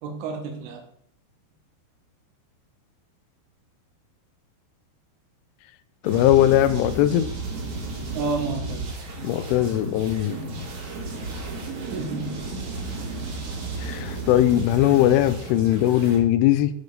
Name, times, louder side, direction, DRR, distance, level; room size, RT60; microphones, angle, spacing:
voice 1, 0.0-0.9 8.1-8.9 11.8-12.4 12.9-13.0, right 4 dB, 90° right, 3 dB, 3.9 m, -31 dB
voice 2, 6.0-7.3 9.2-10.4 13.8-16.7, left 13 dB, 90° left, 13 dB, 3.1 m, -20 dB
sound 1, 6.0-16.2, right 2 dB, 55° right, 2.2 m, -33 dB
10.5 x 5.2 x 3.9 m, 0.66 s
omnidirectional pair, 5.5 m